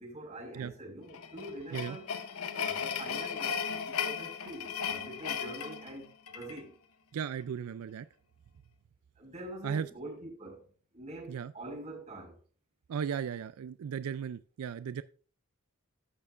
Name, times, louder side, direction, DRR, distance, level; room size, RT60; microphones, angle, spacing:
voice 1, 0.0-2.0 2.5-6.8 9.2-10.7 10.9-12.4, right 1 dB, 35° right, 4.7 m, -45 dB
sound 1, 1.1-6.6, left 7 dB, 90° left, 0.8 m, -36 dB
voice 2, 7.1-8.1 9.6-9.9 11.3-11.5 12.9-15.0, right 7 dB, 90° right, 0.4 m, -36 dB
14.0 x 6.6 x 2.4 m
head